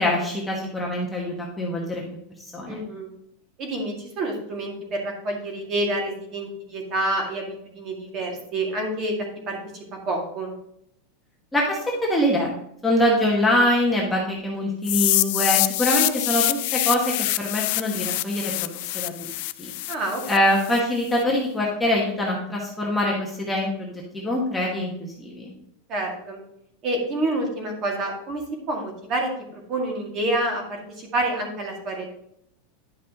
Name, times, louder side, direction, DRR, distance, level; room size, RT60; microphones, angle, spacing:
voice 1, 0.0-2.0 2.5-2.8 11.5-12.6 12.8-19.3 19.6-19.7 20.3-24.9 25.2-25.5, left 1 dB, 5° left, -3 dB, 1.3 m, -24 dB
voice 2, 2.7-3.1 3.6-9.2 9.5-9.6 10.1-10.5 19.9-20.2 25.9-26.4 26.8-29.3 29.7-32.1, right 1 dB, 30° right, 1 dB, 2.0 m, -28 dB
sound 1, 14.8-20.8, left 19 dB, 50° left, 0.4 m, -25 dB
10.5 x 6.0 x 2.9 m, 0.75 s
supercardioid pair, 170°, 0 cm